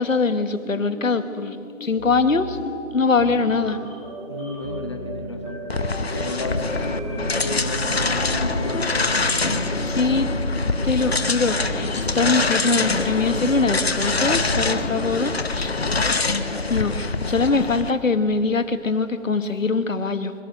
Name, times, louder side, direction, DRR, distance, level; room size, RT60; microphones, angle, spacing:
voice 1, 0.0-3.8 9.9-10.3 10.8-15.8 16.7-20.3, left 4 dB, 70° left, 10 dB, 1.7 m, -23 dB
sound 1, 0.6-9.0, equal, ahead, 7.6 m, -36 dB
voice 2, 4.3-5.6 6.0-10.2 13.6-13.9, left 2 dB, 20° left, 3 dB, 1.5 m, -34 dB
sound 2, 5.7-17.9, left 3 dB, 50° left, 1.1 m, -25 dB
sound 3, 6.5-15.2, equal, 20° right, 1.1 m, -30 dB
25.0 x 22.5 x 6.4 m, 2.6 s
figure-of-eight pair, 175°, 41 cm